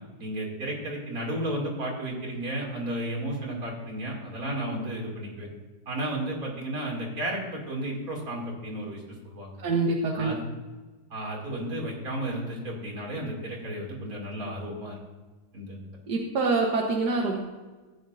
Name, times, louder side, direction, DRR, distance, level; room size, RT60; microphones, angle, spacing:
voice 1, 0.2-5.5 5.9-9.6 10.1-10.5 11.1-15.0 15.5-15.8, right 1 dB, 60° right, -1 dB, 3.0 m, -33 dB
voice 2, 9.6-10.3 16.1-17.4, right 3 dB, 90° right, 0 dB, 1.7 m, -25 dB
14.5 x 9.5 x 2.6 m, 1.3 s
omnidirectional pair, 1.7 m